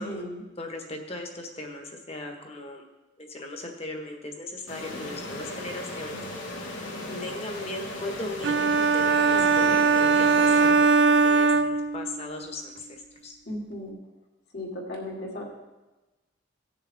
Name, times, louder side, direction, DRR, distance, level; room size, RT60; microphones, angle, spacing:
voice 1, 0.0-0.4 4.9-5.0 7.0-7.2 9.3-9.9 13.5-13.9 14.5-15.4, left 1 dB, 55° left, -2 dB, 2.4 m, -36 dB
voice 2, 0.6-2.8 3.2-6.2 7.2-13.4, left 2 dB, 35° left, 3 dB, 1.4 m, -38 dB
sound 1, 4.7-11.3, left 1 dB, 85° left, 2.1 m, -37 dB
sound 2, 8.4-12.3, right 4 dB, 65° right, 0.4 m, -21 dB
17.5 x 6.7 x 3.5 m, 1.1 s
head